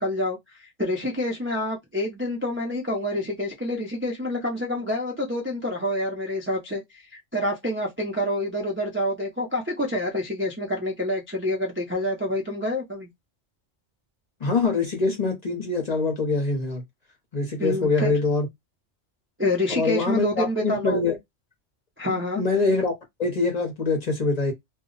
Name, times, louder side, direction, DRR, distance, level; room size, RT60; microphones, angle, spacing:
voice 1, 0.0-13.1 17.6-18.1 19.4-21.0 22.0-22.4, left 1 dB, 15° right, 0.4 m, -27 dB
voice 2, 14.4-16.8 17.3-18.5 19.7-21.2 22.0-22.9 23.2-24.5, left 3 dB, 40° left, 0.7 m, -24 dB
2.3 x 2.0 x 3.7 m
omnidirectional pair, 1.2 m